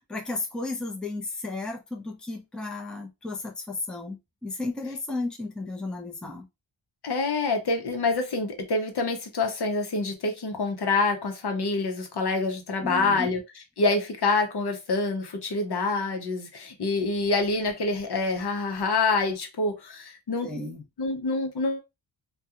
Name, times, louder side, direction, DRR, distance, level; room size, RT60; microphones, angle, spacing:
voice 1, 0.1-6.5 12.8-13.3 20.4-20.8, left 2 dB, ahead, 0.5 m, -34 dB
voice 2, 7.0-13.4 13.8-20.5 21.0-21.8, left 3 dB, 60° left, 0.8 m, -26 dB
2.3 x 2.3 x 2.8 m
wide cardioid pair, 90°, 46 cm